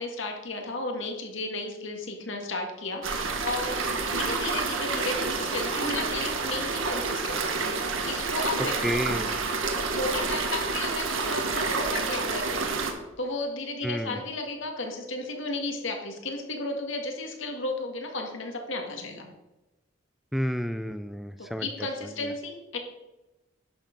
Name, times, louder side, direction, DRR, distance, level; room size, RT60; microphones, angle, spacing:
voice 1, 0.0-7.6 8.0-9.0 9.9-12.7 13.2-19.3 21.4-22.8, left 2 dB, 65° left, 3 dB, 1.9 m, -34 dB
sound 1, 3.0-12.9, right 4 dB, 75° right, 1.5 m, -29 dB
voice 2, 8.8-9.3 13.8-14.2 20.3-21.7 22.2-22.3, equal, ahead, 10 dB, 0.3 m, -30 dB
11.0 x 7.3 x 5.3 m, 1.0 s
head